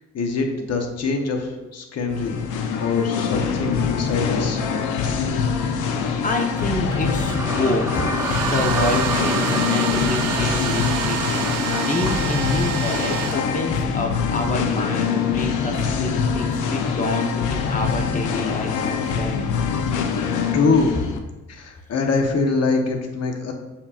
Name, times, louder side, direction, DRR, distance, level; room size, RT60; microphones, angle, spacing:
voice 1, 0.1-2.4 2.8-4.6 20.5-20.9 21.5-23.5, left 3 dB, 55° left, 3 dB, 1.1 m, -23 dB
Singing, 2.0-21.2, left 6 dB, 85° left, 0.7 m, -24 dB
voice 2, 6.2-8.1 8.4-19.4, left 2 dB, 25° left, 3 dB, 1.0 m, -27 dB
sound 1, 6.6-13.8, right 3 dB, 10° right, 0.4 m, -30 dB
Domestic sounds home sounds, 8.1-13.9, right 7 dB, 85° right, 0.8 m, -29 dB
6.5 x 5.8 x 2.5 m, 1.1 s
cardioid pair, 90°, 30 cm